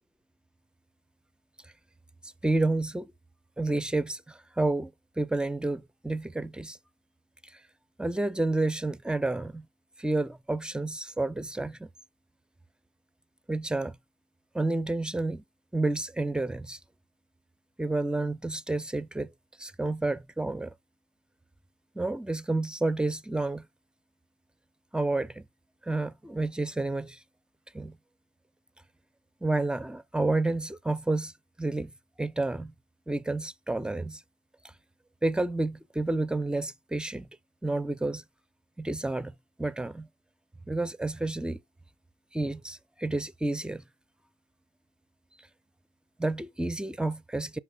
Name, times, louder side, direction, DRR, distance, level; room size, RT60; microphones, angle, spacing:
voice 1, 2.4-3.1 3.6-6.8 8.0-9.7 10.0-11.9 13.5-14.0 14.5-15.4 15.7-16.8 17.8-19.3 19.6-20.7 22.0-23.7 24.9-25.4 25.8-27.2 27.7-28.0 29.4-31.3 31.6-31.9 32.2-32.7 33.1-34.2 35.2-37.3 37.6-38.2 38.8-40.1 40.7-41.6 42.3-43.8 46.2-47.6, right 2 dB, 5° right, 0.4 m, -30 dB
5.8 x 5.4 x 3.7 m
supercardioid pair, 80°, 14 cm